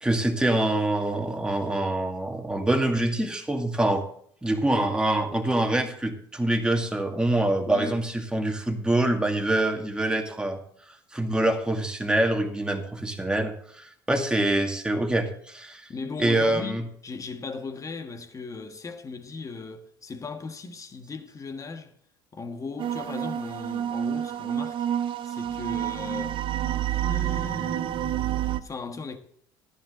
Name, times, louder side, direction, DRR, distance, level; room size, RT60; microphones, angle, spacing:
voice 1, 0.0-4.1 4.4-10.6 11.1-15.9 16.2-16.8, right 1 dB, 10° right, 2.1 m, -25 dB
voice 2, 7.7-8.1 15.9-21.9 22.3-24.9 25.2-26.4 26.9-29.2, left 4 dB, 30° left, 1.6 m, -37 dB
sound 1, 22.8-28.6, right 11 dB, 50° right, 0.7 m, -29 dB
13.0 x 10.5 x 3.8 m
hypercardioid pair, 70°, 11 cm